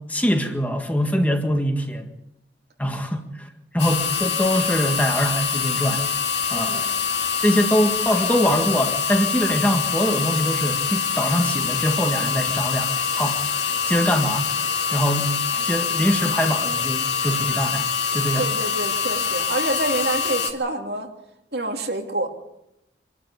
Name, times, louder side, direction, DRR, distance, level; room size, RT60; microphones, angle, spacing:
voice 1, 0.0-2.1 2.8-3.5 3.7-6.0 6.5-6.9 7.4-13.4 13.9-14.5 14.9-15.4 15.6-17.9 18.1-18.5, equal, 10° left, 4 dB, 1.7 m, -23 dB
sound 1, 3.8-20.5, left 6 dB, 80° left, 2.3 m, -25 dB
voice 2, 6.5-6.8 18.4-21.1 21.5-22.3, right 2 dB, 65° right, 3 dB, 2.9 m, -27 dB
24.5 x 12.5 x 9.7 m, 0.85 s
head